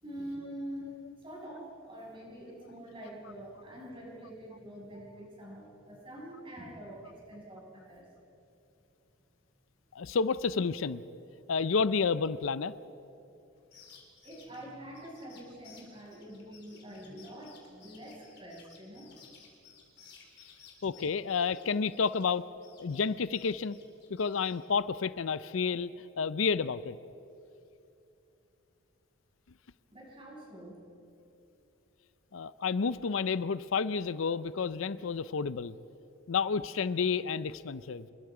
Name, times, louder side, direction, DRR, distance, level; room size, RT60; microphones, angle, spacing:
voice 1, 0.0-8.1 13.2-13.6 14.2-19.2 29.9-30.8, right 1 dB, 25° right, -3 dB, 6.2 m, -45 dB
voice 2, 9.9-11.0 11.5-12.7 20.8-22.5 22.8-23.8 24.1-25.9 26.2-27.0 32.3-35.7 36.3-38.1, left 5 dB, 80° left, 16 dB, 0.5 m, -30 dB
sound 1, 13.6-22.4 22.6-24.6, left 7 dB, 55° left, 4.1 m, -57 dB
28.0 x 22.0 x 4.9 m, 2.7 s
head